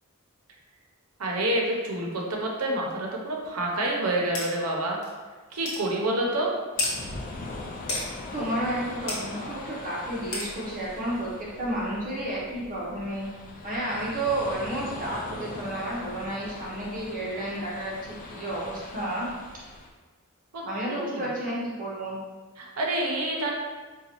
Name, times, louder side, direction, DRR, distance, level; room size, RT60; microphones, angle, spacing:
voice 1, 1.2-5.0 5.5-6.5 20.5-21.3 22.6-23.5, right 1 dB, 80° right, -1 dB, 0.7 m, -28 dB
sound 1, 4.3-4.5 5.0-5.1 5.6-5.8 6.8-6.9 7.9-8.1 9.1-9.2 10.3-10.5, left 2 dB, 55° left, 1.0 m, -29 dB
sound 2, 6.7-19.9, left 2 dB, 40° left, 0.3 m, -41 dB
voice 2, 8.3-13.3 13.6-19.3 20.6-22.2, right 1 dB, 40° right, -6 dB, 0.8 m, -31 dB
3.9 x 2.3 x 2.9 m, 1.4 s
head